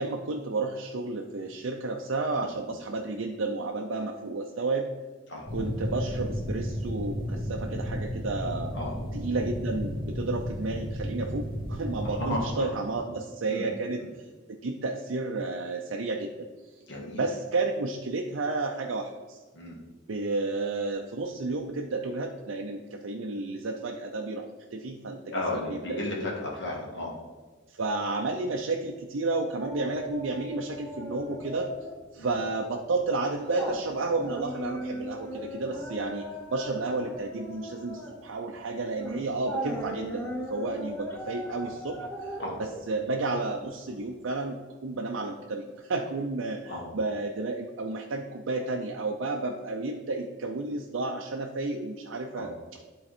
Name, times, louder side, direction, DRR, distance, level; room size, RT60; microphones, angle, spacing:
voice 1, 0.0-4.9 5.5-8.7 9.1-14.0 14.6-16.5 17.1-19.4 20.1-25.3 25.7-26.3 27.7-31.7 32.1-36.3 36.5-52.5, right 3 dB, 75° right, 1 dB, 0.6 m, -32 dB
voice 2, 2.3-2.7 5.3-5.5 8.7-8.9 12.0-12.8 13.5-13.7 14.0-14.1 16.9-17.2 19.5-19.8 25.3-27.1 32.2-32.4 42.4-42.6 46.7-46.9 52.4-52.5, left 1 dB, 60° left, -3 dB, 2.1 m, -34 dB
sound 1, 5.5-12.5, equal, 25° left, 2.5 m, -33 dB
sound 2, 29.6-32.0 32.3-32.5 33.0-43.9 44.3-44.4, equal, 10° left, 1.1 m, -38 dB
11.5 x 3.8 x 4.3 m, 1.3 s
head